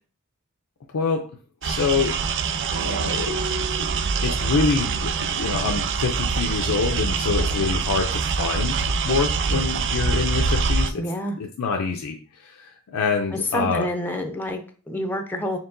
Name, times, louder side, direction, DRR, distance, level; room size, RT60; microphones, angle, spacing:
voice 1, 0.9-1.3 1.6-2.2 2.8-3.4 3.8-3.9 4.2-8.8 9.0-11.0 11.4-13.9, left 5 dB, 80° left, 2 dB, 0.5 m, -26 dB
sound 1, 1.6-10.9, right 5 dB, 55° right, 0.4 m, -24 dB
sound 2, 2.7-7.4, right 3 dB, 80° right, 1.0 m, -38 dB
voice 2, 11.0-11.4 13.5-15.6, equal, 10° left, 5 dB, 0.4 m, -28 dB
4.5 x 3.5 x 2.6 m, 0.40 s
head